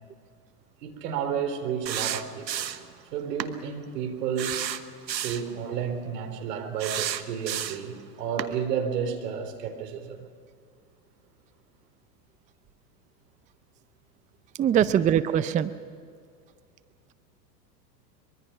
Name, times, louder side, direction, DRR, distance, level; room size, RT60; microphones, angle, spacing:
voice 1, 0.8-2.7 3.1-4.6 5.2-10.3 14.7-14.9, right 7 dB, 70° right, 7 dB, 3.7 m, -31 dB
sound 1, 1.9-2.9 3.4-3.5 4.4-5.5 6.8-7.9 8.4-8.5, right 10 dB, 90° right, 1.2 m, -31 dB
voice 2, 14.6-15.7, right 9 dB, 15° right, 14 dB, 0.5 m, -22 dB
24.0 x 23.0 x 5.7 m, 2.2 s
hypercardioid pair, 105°, 50 cm